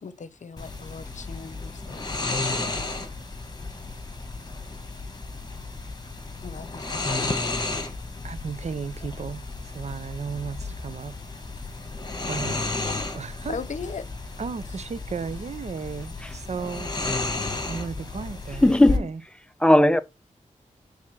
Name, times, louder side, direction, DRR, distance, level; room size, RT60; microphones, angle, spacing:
voice 1, 0.0-2.1 6.4-7.5 12.6-13.0 13.5-14.1, left 5 dB, 65° left, 0.7 m, -39 dB
sound 1, 0.6-19.0, left 3 dB, 30° left, 1.4 m, -33 dB
voice 2, 8.2-11.1 12.3-13.6 14.4-16.9 17.7-19.2, right 5 dB, 55° right, 0.7 m, -35 dB
voice 3, 18.6-19.1 19.6-20.0, left 1 dB, 5° left, 0.6 m, -17 dB
6.1 x 3.6 x 6.0 m
wide cardioid pair, 80°, 13 cm